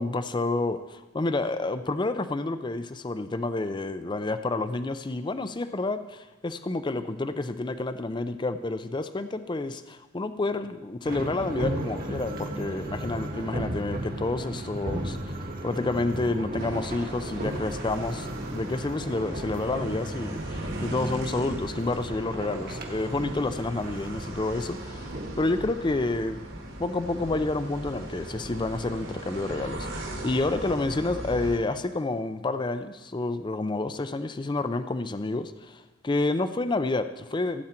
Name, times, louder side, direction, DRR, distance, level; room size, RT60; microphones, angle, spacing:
voice 1, 0.0-25.1 25.4-26.5 26.8-37.6, left 2 dB, 25° left, 11 dB, 0.4 m, -29 dB
sound 1, 11.0-25.7, right 1 dB, 45° right, 1.5 m, -36 dB
sound 2, 16.6-31.6, right 1 dB, 75° right, 3.1 m, -38 dB
15.5 x 8.7 x 4.4 m, 1.1 s
head